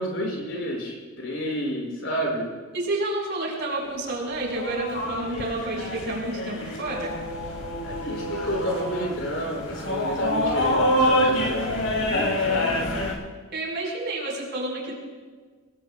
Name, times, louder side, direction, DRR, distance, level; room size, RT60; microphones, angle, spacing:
voice 1, 0.0-2.5 7.8-13.1, equal, 60° left, -2 dB, 6.6 m, -30 dB
voice 2, 2.7-7.2 13.5-15.0, right 2 dB, 55° right, -2 dB, 5.3 m, -30 dB
sound 1, 4.3-13.1, left 1 dB, 85° left, 5.4 m, -26 dB
26.0 x 19.5 x 2.4 m, 1.4 s
head